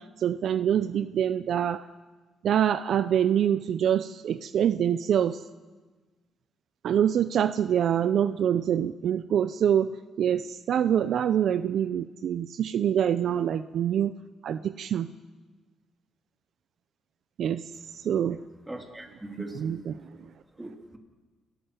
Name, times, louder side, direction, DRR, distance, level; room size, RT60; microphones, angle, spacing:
voice 1, 0.0-1.8 2.4-5.4 6.8-9.9 10.2-14.1 14.4-15.1 17.4-17.6 18.0-18.4 19.5-19.9, right 9 dB, 65° right, 13 dB, 0.5 m, -25 dB
voice 2, 18.7-19.8 20.6-21.0, right 1 dB, 10° right, 3 dB, 2.9 m, -40 dB
29.5 x 13.5 x 6.9 m, 1.3 s
cardioid pair, 90°, 0 cm